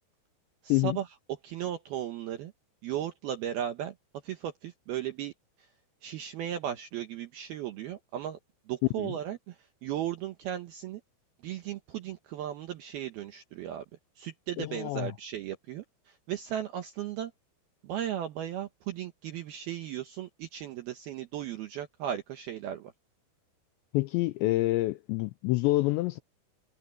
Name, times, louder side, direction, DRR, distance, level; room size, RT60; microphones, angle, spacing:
voice 1, 0.6-1.1 1.4-2.5 2.8-3.9 4.2-5.3 5.6-5.7 6.0-8.4 8.7-11.0 11.4-13.8 14.2-17.3 17.8-22.9, right 11 dB, 75° right, 2.4 m, -36 dB
voice 2, 14.6-15.1 23.9-26.2, left 19 dB, 90° left, 2.5 m, -27 dB
omnidirectional pair, 5.8 m